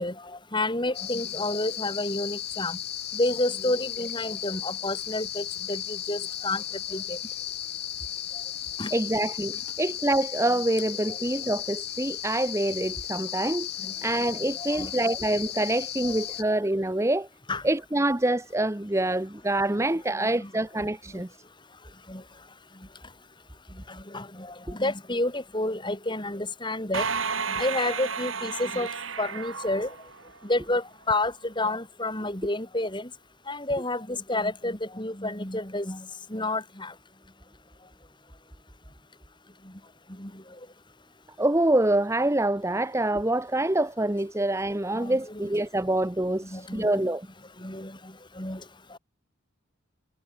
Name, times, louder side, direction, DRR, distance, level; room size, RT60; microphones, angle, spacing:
voice 1, 0.0-2.8 3.1-6.6 6.9-7.2 8.8-8.9 11.1-11.2 13.8-13.9 14.6-14.9 16.0-16.2 17.5-17.6 20.2-20.5 22.1-22.2 23.9-27.0 27.5-28.9 29.2-29.9 30.4-33.1 33.5-36.9 40.2-40.4 44.9-45.5 46.4-47.1 47.6-48.6 48.9-49.0, left 2 dB, 20° left, 4.7 m, -30 dB
sound 1, 0.9-16.4, left 11 dB, 50° left, 3.7 m, -35 dB
voice 2, 8.9-13.7 14.0-17.3 17.6-21.3 24.7-24.8 41.4-47.3, right 1 dB, 15° right, 0.8 m, -26 dB
sound 2, 26.9-30.6, right 5 dB, 75° right, 5.9 m, -32 dB
head